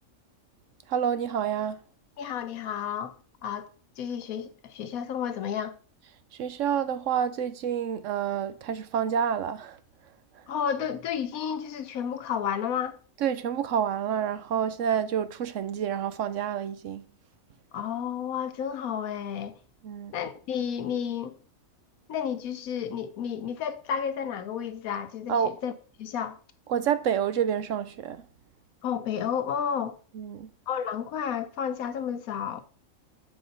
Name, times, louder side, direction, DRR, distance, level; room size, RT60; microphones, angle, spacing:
voice 1, 0.9-1.8 6.4-9.8 13.2-17.0 19.8-20.1 25.3-25.5 26.7-28.2 30.1-30.5, right 8 dB, 70° right, 0.9 m, -28 dB
voice 2, 2.2-3.7 4.0-5.8 10.5-13.0 17.7-19.5 20.1-21.4 22.1-25.7 26.0-26.4 28.8-30.0 30.7-32.6, left 8 dB, 85° left, 1.3 m, -31 dB
8.0 x 5.0 x 4.0 m
omnidirectional pair, 1.5 m